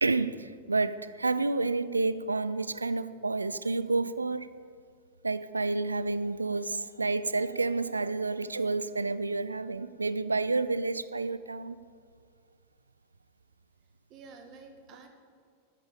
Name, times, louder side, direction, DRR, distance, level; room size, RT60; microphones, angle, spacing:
voice 1, 0.0-4.5 5.2-11.8, right 3 dB, 80° right, 15 dB, 0.5 m, -29 dB
voice 2, 14.1-15.1, right 4 dB, 35° right, 4 dB, 2.0 m, -51 dB
13.0 x 8.9 x 7.0 m, 2.1 s
figure-of-eight pair, 90°, 0 cm